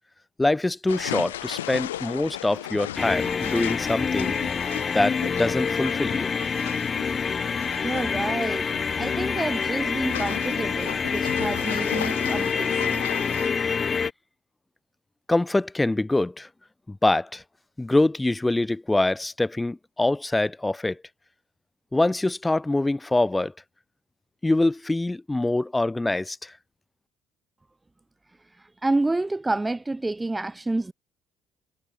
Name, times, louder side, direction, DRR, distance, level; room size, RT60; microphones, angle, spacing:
voice 1, 0.4-4.4 4.9-6.3 15.3-16.5 16.9-17.4 17.8-21.0 21.9-23.5 24.4-26.5, left 2 dB, 15° left, 0.6 m, -24 dB
Waves in small rocky cavern, 0.9-13.5, left 14 dB, 80° left, 1.1 m, -37 dB
sound 1, 3.0-14.1, left 6 dB, 35° left, 1.4 m, -27 dB
voice 2, 7.8-8.7 9.0-13.0 28.5-30.9, right 2 dB, 15° right, 1.3 m, -29 dB
figure-of-eight pair, 50°, 0 cm